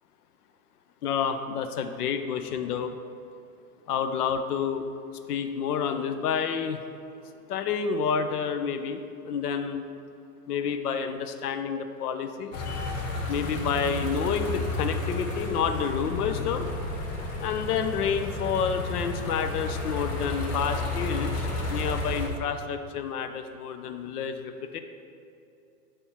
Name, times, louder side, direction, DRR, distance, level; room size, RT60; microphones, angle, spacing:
voice 1, 1.0-3.0 3.9-4.8 5.3-6.8 7.5-9.8 10.5-12.9 13.3-16.7 17.4-24.8, left 7 dB, 85° left, 8 dB, 0.6 m, -29 dB
sound 1, 12.5-22.3, left 2 dB, 60° left, 1.5 m, -32 dB
8.6 x 3.5 x 4.2 m, 2.6 s
hypercardioid pair, 145°, 44 cm